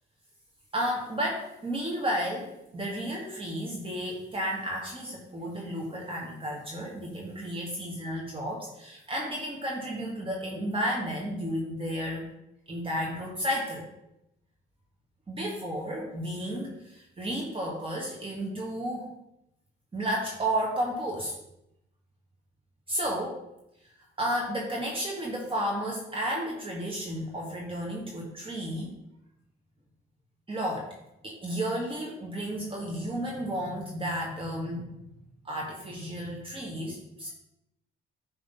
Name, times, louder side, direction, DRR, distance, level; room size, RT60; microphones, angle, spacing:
voice 1, 0.7-12.3 12.7-13.9 15.3-19.1 19.9-21.3 22.9-23.4 24.2-28.9 30.5-30.9 31.2-35.0 35.4-37.3, equal, 25° right, -2 dB, 1.5 m, -32 dB
9.6 x 3.3 x 5.4 m, 0.84 s
cardioid pair, 90°, 20 cm